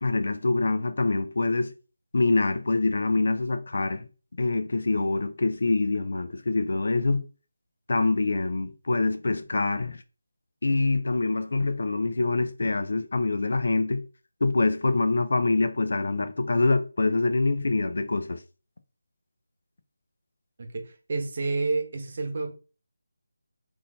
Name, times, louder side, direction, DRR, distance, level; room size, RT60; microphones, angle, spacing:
voice 1, 0.0-1.7 2.1-4.1 4.4-7.2 7.9-10.0 10.6-14.0 14.4-18.4, left 3 dB, 60° left, 0.5 m, -25 dB
voice 2, 20.6-22.5, right 3 dB, 40° right, 0.9 m, -29 dB
3.8 x 2.7 x 3.9 m
figure-of-eight pair, 170°, 0 cm